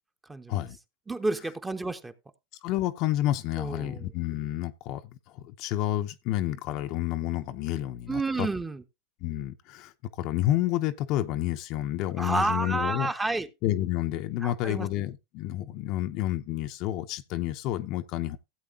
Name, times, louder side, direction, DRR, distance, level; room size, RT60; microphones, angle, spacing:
voice 1, 1.1-2.1 3.6-4.0 8.1-8.8 12.2-13.5 14.4-14.9, right 2 dB, 10° right, 0.9 m, -30 dB
voice 2, 2.6-8.5 9.2-13.1 13.6-18.4, left 14 dB, 55° left, 0.7 m, -30 dB
15.5 x 8.0 x 2.5 m
hypercardioid pair, 105°, 0 cm